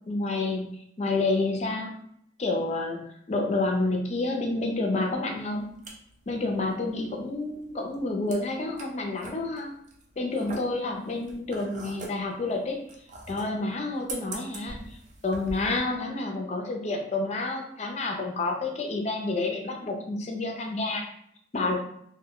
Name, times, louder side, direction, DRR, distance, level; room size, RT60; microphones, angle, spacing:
voice 1, 0.1-0.7 1.0-1.9 2.4-3.0 3.3-5.6 6.3-9.7 10.2-12.8 13.3-15.0 15.2-21.0 21.5-21.8, left 2 dB, 35° left, 2 dB, 0.4 m, -29 dB
sound 1, 5.4-15.8, right 2 dB, 40° right, 0.4 m, -44 dB
2.1 x 2.0 x 3.7 m, 0.71 s
head